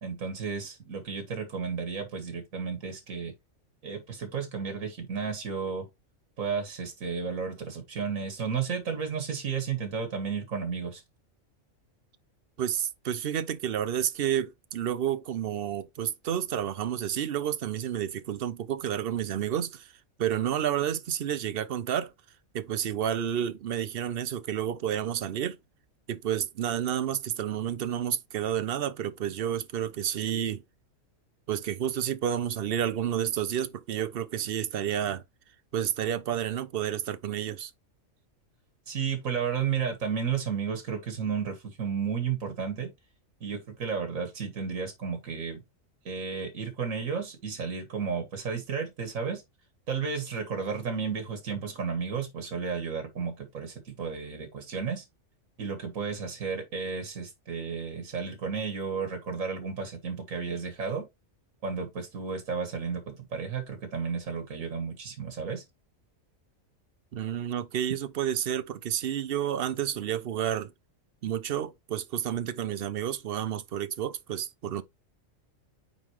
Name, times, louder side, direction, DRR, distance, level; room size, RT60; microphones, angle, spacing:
voice 1, 0.0-3.3 3.8-5.9 6.4-11.0 38.9-42.9 43.4-45.6 46.1-49.4 49.9-55.1 55.6-61.1 61.6-65.6, right 6 dB, 90° right, 1.9 m, -33 dB
voice 2, 12.6-19.9 20.2-22.1 22.5-25.6 26.1-30.6 31.5-35.2 35.7-37.7 67.1-70.7 71.2-74.8, right 10 dB, 55° right, 0.7 m, -30 dB
9.0 x 3.8 x 3.1 m
omnidirectional pair, 1.4 m